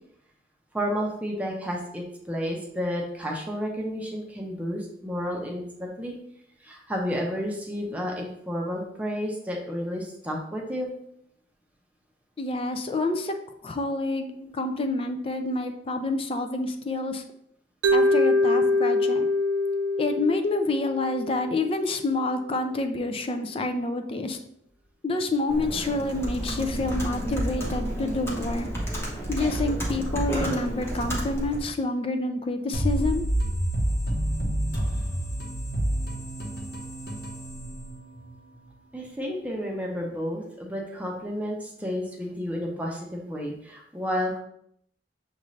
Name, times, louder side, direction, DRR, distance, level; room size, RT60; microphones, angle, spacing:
voice 1, 0.7-6.2 6.6-10.9 14.3-14.5 21.3-21.5 32.6-32.7 38.9-44.4, equal, 10° right, -1 dB, 0.6 m, -31 dB
voice 2, 12.4-13.4 13.6-14.3 14.5-17.2 17.9-19.3 20.0-24.4 25.0-28.7 29.3-33.2, left 2 dB, 30° left, 7 dB, 0.4 m, -28 dB
Mallet percussion, 17.8-21.9, left 2 dB, 90° right, 0.4 m, -24 dB
Computer keyboard, 25.5-31.7, equal, 15° left, 0.9 m, -31 dB
sound 1, 32.7-38.4, right 1 dB, 55° left, 1.1 m, -28 dB
6.4 x 2.6 x 3.1 m, 0.72 s
head